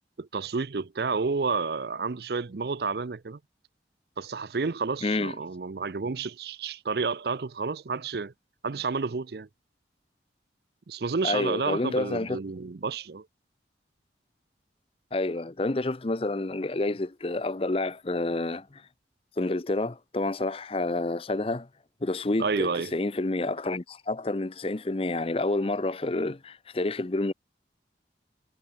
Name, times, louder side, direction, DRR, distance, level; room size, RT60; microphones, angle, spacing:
voice 1, 0.2-3.4 4.2-8.3 8.6-9.5 10.9-13.3 22.4-22.9, right 4 dB, 60° right, 0.5 m, -30 dB
voice 2, 5.0-5.3 11.2-12.4 15.1-18.8 19.4-21.7 22.0-27.3, left 2 dB, 30° left, 0.6 m, -29 dB
head